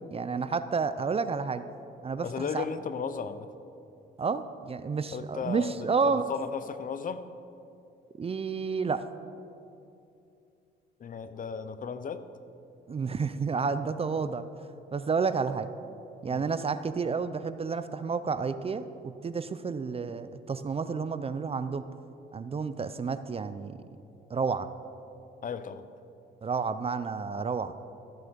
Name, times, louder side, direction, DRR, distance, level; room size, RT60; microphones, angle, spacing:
voice 1, 0.1-1.6 2.0-2.6 4.2-6.2 8.2-9.0 12.9-14.4 14.9-15.7 16.2-21.8 22.3-23.8 24.3-24.7 26.4-27.7, right 5 dB, 30° right, 12 dB, 0.5 m, -30 dB
voice 2, 2.2-3.5 5.1-7.2 11.0-12.2 16.3-16.5 25.4-25.8, left 6 dB, 45° left, 12 dB, 0.6 m, -35 dB
14.0 x 8.0 x 5.2 m, 2.6 s
cardioid pair, 90°, 20 cm